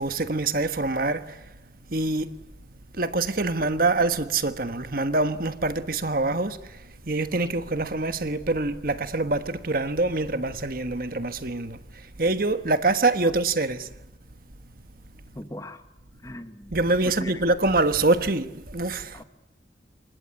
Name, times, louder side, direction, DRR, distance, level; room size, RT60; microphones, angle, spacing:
voice 1, 0.0-1.4 1.9-2.3 2.9-6.8 7.0-11.8 12.2-13.9 16.7-19.2, right 2 dB, 50° right, 1.4 m, -25 dB
voice 2, 15.3-15.9 16.2-16.8 17.0-17.4 19.1-19.2, left 1 dB, 20° left, 1.6 m, -39 dB
27.5 x 24.5 x 8.5 m
head